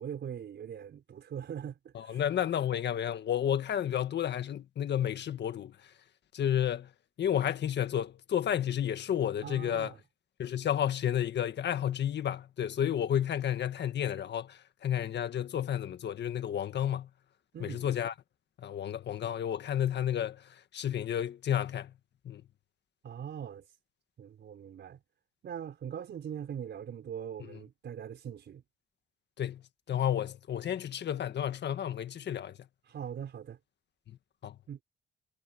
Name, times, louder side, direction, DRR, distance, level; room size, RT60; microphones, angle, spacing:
voice 1, 0.0-2.2 9.4-10.0 17.5-17.9 23.0-23.6 24.2-25.0 25.4-28.6 32.8-33.6 34.7-34.8, right 8 dB, 60° right, 4.9 m, -41 dB
voice 2, 1.9-5.7 6.3-6.9 7.2-9.9 10.4-17.1 17.6-18.1 18.6-20.4 20.7-21.9 22.2-22.4 27.5-27.6 29.4-29.6 29.9-32.5 34.4-34.5, left 10 dB, 60° left, 1.6 m, -31 dB
cardioid pair, 90°, 20 cm